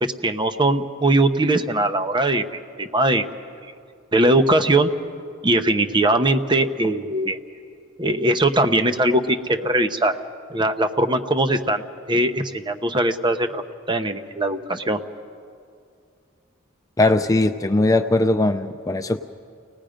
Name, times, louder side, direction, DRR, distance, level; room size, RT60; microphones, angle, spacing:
voice 1, 0.0-3.3 4.1-4.9 5.4-7.4 8.0-10.2 10.5-11.8 12.1-13.6 13.9-15.0, right 1 dB, 25° right, 7 dB, 0.9 m, -20 dB
voice 2, 17.0-19.2, left 2 dB, 15° left, 8 dB, 0.4 m, -19 dB
29.5 x 18.5 x 5.1 m, 2.3 s
head